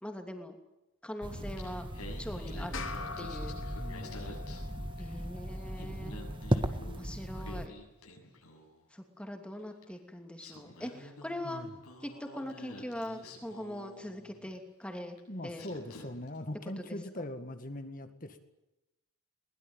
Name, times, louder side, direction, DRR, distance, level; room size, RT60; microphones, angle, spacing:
voice 1, 0.0-0.6 1.0-1.9 2.2-2.9 3.2-3.6 5.0-6.2 6.9-7.7 8.9-11.7 12.0-15.2 15.4-15.7 16.8-16.9, left 1 dB, 5° left, 5 dB, 2.9 m, -41 dB
sound 1, 1.2-7.7, right 1 dB, 20° right, 1.6 m, -37 dB
Singing, 1.3-5.3 5.6-8.8 9.8-9.9 10.4-14.6 15.2-15.3 15.6-16.4, left 1 dB, 80° left, 7.8 m, -50 dB
sound 2, 2.7-7.5, left 5 dB, 60° left, 2.7 m, -46 dB
voice 2, 3.8-4.4 11.4-11.7 15.3-18.4, left 1 dB, 35° left, 8 dB, 2.0 m, -41 dB
22.0 x 21.0 x 9.1 m, 0.94 s
head